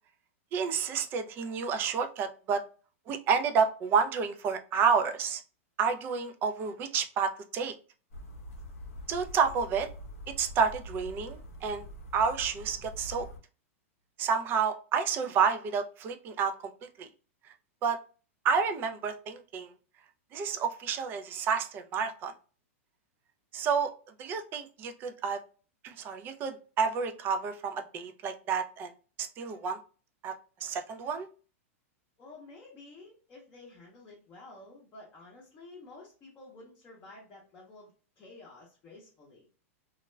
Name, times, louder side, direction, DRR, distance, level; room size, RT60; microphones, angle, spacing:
voice 1, 0.5-2.6 3.1-5.4 5.8-7.7 9.1-9.9 10.4-11.8 12.1-13.3 14.2-16.5 16.8-17.1 17.8-18.0 18.4-19.7 20.3-22.3 23.5-23.9 24.2-25.4 25.8-28.9 29.2-29.8 30.2-30.3 30.6-31.3, right 6 dB, 25° right, 7 dB, 0.4 m, -29 dB
sound 1, 8.1-13.4, equal, 85° left, 0.7 m, -44 dB
voice 2, 32.2-39.5, left 2 dB, 25° left, -4 dB, 0.7 m, -51 dB
2.3 x 2.1 x 3.1 m, 0.38 s
supercardioid pair, 140°, 8 cm